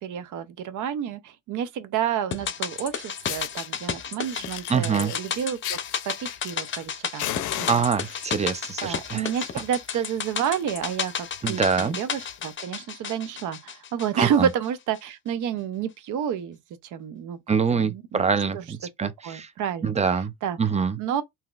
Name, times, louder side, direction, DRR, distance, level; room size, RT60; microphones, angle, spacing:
voice 1, 0.0-5.8 6.1-7.3 7.6-7.8 8.8-16.6 16.9-17.4 17.8-18.6 19.0-20.1 20.4-20.6 21.0-21.2, right 9 dB, 80° right, 0.7 m, -30 dB
sound 1, 2.3-14.7 14.9-15.0, left 7 dB, 40° left, 0.6 m, -33 dB
Fire, 2.8-2.9 3.2-3.7 4.2-6.9 7.2-8.4 9.2-9.4 9.7-9.8 10.2-10.3 10.6-10.8 11.4-11.5 12.4-12.5, left 13 dB, 80° left, 0.5 m, -35 dB
voice 2, 4.7-5.1 7.7-9.3 11.4-12.0 14.2-14.5 17.5-19.5 19.8-20.3 20.6-21.0, right 6 dB, 20° right, 0.5 m, -24 dB
3.7 x 2.8 x 2.4 m
cardioid pair, 90°, 30 cm